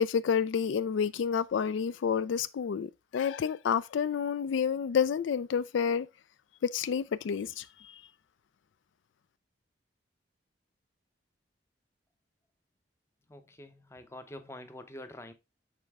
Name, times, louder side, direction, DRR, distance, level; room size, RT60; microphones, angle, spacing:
voice 1, 0.0-6.1 6.6-8.0, left 7 dB, 80° left, 0.4 m, -29 dB
voice 2, 13.3-15.3, left 1 dB, 15° left, 0.7 m, -46 dB
6.7 x 4.3 x 3.5 m
head